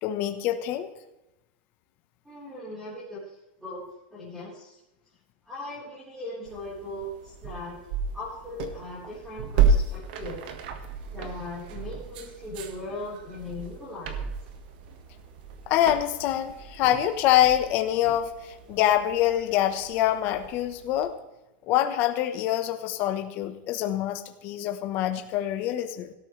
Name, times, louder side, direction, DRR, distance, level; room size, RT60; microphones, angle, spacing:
voice 1, 0.0-0.9 15.7-21.1 21.6-26.1, left 12 dB, 30° left, 7 dB, 1.1 m, -25 dB
voice 2, 2.2-3.8 4.1-4.8 5.4-7.8 8.1-10.4 11.1-14.2, left 2 dB, 5° right, -9 dB, 4.2 m, -39 dB
sound 1, 6.4-21.1, right 5 dB, 50° right, 1.6 m, -32 dB
18.0 x 13.0 x 3.3 m, 0.95 s
supercardioid pair, 175°, 6 cm